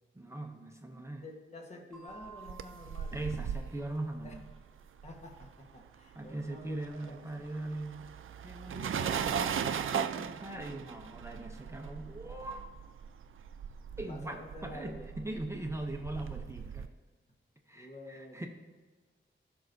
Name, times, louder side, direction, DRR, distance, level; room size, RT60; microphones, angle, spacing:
voice 1, 0.1-1.2 3.1-4.4 6.1-8.1 8.4-12.7 14.0-16.9 17.7-18.5, right 1 dB, 15° right, 3 dB, 0.6 m, -41 dB
voice 2, 1.2-3.3 4.2-4.3 5.0-7.5 8.9-9.6 14.1-15.1 17.7-18.5, left 1 dB, 35° left, 1 dB, 1.3 m, -49 dB
sound 1, 1.9-4.4, right 4 dB, 5° left, 2.9 m, -54 dB
sound 2, 2.2-5.9 6.1-16.9, right 7 dB, 80° right, 0.4 m, -38 dB
18.0 x 6.1 x 2.7 m, 1.4 s
wide cardioid pair, 160°, 20 cm